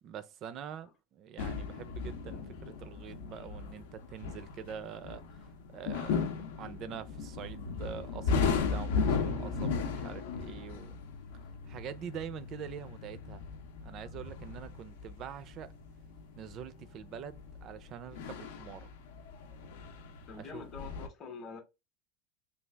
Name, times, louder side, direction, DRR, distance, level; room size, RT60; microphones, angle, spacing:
voice 1, 0.0-6.3 6.6-11.0 11.6-13.4 13.8-15.7 16.4-18.9 20.4-20.6, right 8 dB, 35° right, 0.4 m, -45 dB
sound 1, 1.4-21.1, left 5 dB, 85° left, 0.6 m, -36 dB
voice 2, 20.3-21.6, left 5 dB, 25° left, 0.8 m, -45 dB
3.3 x 2.3 x 3.3 m
supercardioid pair, 160°, 0 cm